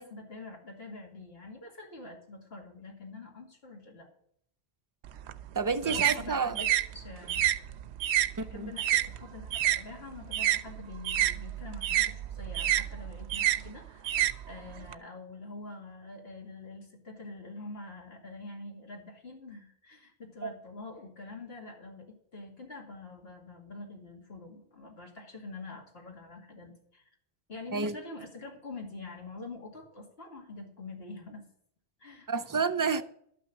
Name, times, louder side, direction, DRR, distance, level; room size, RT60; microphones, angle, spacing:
voice 1, 0.0-4.1 5.7-7.4 8.3-27.0 27.5-31.5 32.0-32.3, left 3 dB, 70° left, 2.7 m, -45 dB
sound 1, 5.0-9.8 10.1-14.9, right 12 dB, 85° right, 0.9 m, -29 dB
voice 2, 5.5-6.6 8.4-8.7 20.4-20.5 27.7-28.0 32.3-33.0, right 5 dB, 25° right, 0.4 m, -30 dB
12.0 x 6.0 x 7.6 m
omnidirectional pair, 1.1 m